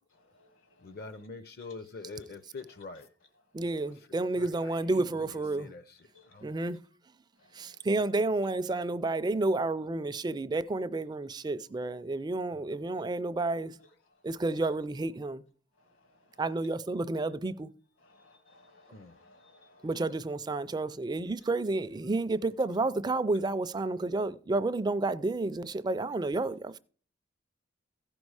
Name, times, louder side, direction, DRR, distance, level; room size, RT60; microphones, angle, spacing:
voice 1, 0.8-3.1 4.4-6.0 6.3-6.5 12.5-12.7 18.9-19.1, left 3 dB, 50° left, 0.6 m, -45 dB
voice 2, 3.5-5.7 6.4-6.8 7.6-13.8 14.2-15.4 16.4-17.7 19.8-26.8, right 2 dB, 20° right, 0.3 m, -30 dB
voice 3, 18.1-19.8, left 2 dB, 75° left, 1.8 m, -59 dB
15.0 x 5.3 x 4.7 m
head